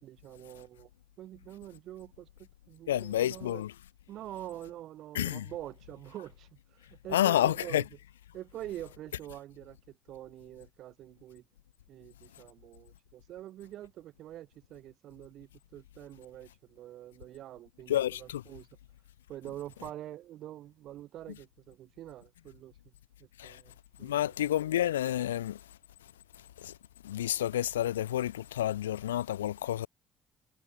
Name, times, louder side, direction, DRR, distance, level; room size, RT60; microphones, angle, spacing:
voice 1, 0.0-0.9 1.2-3.6 4.1-7.9 8.3-11.4 11.9-18.7 19.3-22.7 23.2-24.3, right 13 dB, 60° right, 0.7 m, -46 dB
voice 2, 2.9-3.7 5.2-5.4 7.1-7.8 17.9-18.4 23.4-23.6 24.0-25.6 26.6-26.7 27.0-29.9, left 12 dB, 75° left, 0.3 m, -29 dB
figure-of-eight pair, 45°, 0 cm